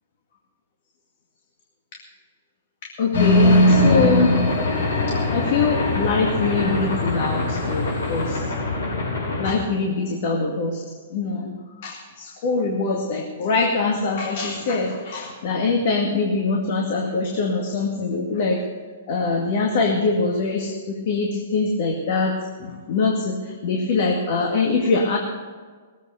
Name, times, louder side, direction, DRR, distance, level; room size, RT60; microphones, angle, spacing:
voice 1, 2.8-4.4 5.1-8.4 9.4-10.8 11.1-18.6 19.1-25.2, left 3 dB, 55° left, 0 dB, 2.2 m, -23 dB
sound 1, 3.1-9.6, left 1 dB, 85° left, 5.7 m, -21 dB
19.5 x 8.2 x 6.7 m, 1.5 s
hypercardioid pair, 135°, 0 cm